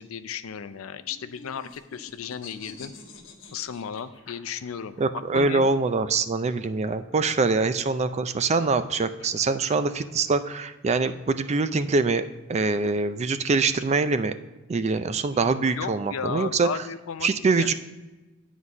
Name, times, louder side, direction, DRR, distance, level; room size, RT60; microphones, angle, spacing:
voice 1, 0.0-2.9 3.5-5.7 15.7-17.3 17.5-17.7, left 7 dB, 85° left, 12 dB, 0.5 m, -34 dB
sound 1, 1.0-5.0 6.3-10.5, left 3 dB, 65° left, 1.1 m, -48 dB
voice 2, 5.0-12.2 12.5-14.3 14.7-16.7 17.2-17.7, right 4 dB, 35° right, 12 dB, 0.4 m, -24 dB
9.6 x 4.1 x 6.0 m, 1.1 s
head